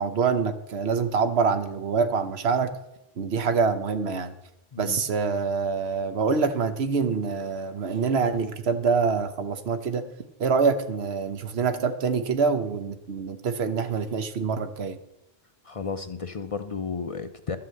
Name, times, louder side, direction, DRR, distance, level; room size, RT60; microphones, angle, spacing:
voice 1, 0.0-2.7 3.2-4.3 4.8-10.1 10.4-15.0, right 5 dB, 90° right, 10 dB, 1.1 m, -25 dB
voice 2, 15.6-17.6, left 5 dB, 45° left, 9 dB, 0.5 m, -33 dB
12.5 x 5.7 x 7.7 m, 0.87 s
omnidirectional pair, 1.0 m